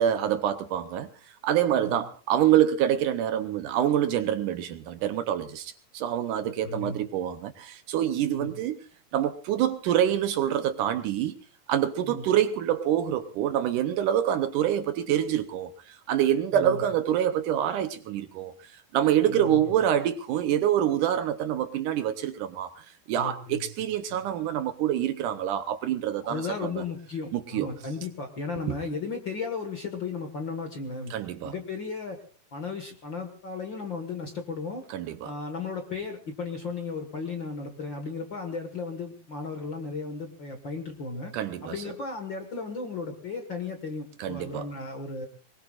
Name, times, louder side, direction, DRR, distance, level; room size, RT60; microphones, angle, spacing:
voice 1, 0.0-8.8 9.1-11.3 11.7-26.5 26.8-26.9 27.3-27.7 28.7-28.8 31.1-31.5 34.9-35.3 41.3-41.7 44.2-44.7, right 10 dB, 75° right, 2.2 m, -26 dB
voice 2, 6.4-7.0 8.3-8.5 12.0-12.2 16.5-16.8 19.3-19.6 23.1-23.6 26.2-31.1 31.4-32.2 32.5-34.8 35.2-41.3 41.6-45.3, left 4 dB, 45° left, 1.8 m, -35 dB
23.5 x 21.0 x 2.5 m
omnidirectional pair, 4.1 m